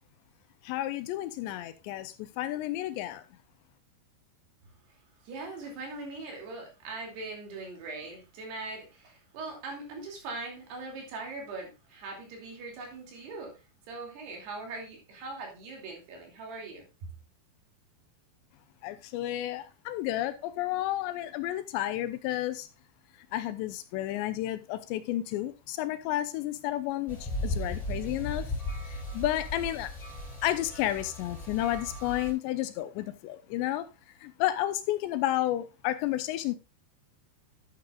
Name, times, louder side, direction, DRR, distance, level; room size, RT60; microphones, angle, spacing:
voice 1, 0.7-3.2 18.8-22.7 23.3-28.5 29.1-29.9 30.4-33.9 34.2-36.6, left 14 dB, 80° left, 2.9 m, -31 dB
voice 2, 5.3-13.6 13.9-17.1, right 3 dB, 65° right, 4.6 m, -41 dB
sound 1, 27.1-32.3, left 1 dB, 10° left, 5.7 m, -36 dB
11.5 x 8.7 x 2.4 m
omnidirectional pair, 5.2 m